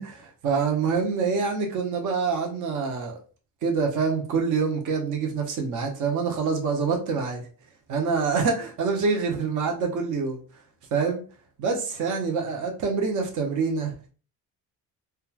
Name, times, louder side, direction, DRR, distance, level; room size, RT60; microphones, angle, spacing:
voice 1, 0.0-3.2 3.6-7.4 7.9-10.4 10.9-11.2 11.6-14.1, right 5 dB, 55° right, 2 dB, 0.7 m, -26 dB
2.9 x 2.3 x 2.3 m, 0.38 s
cardioid pair, 120°, 36 cm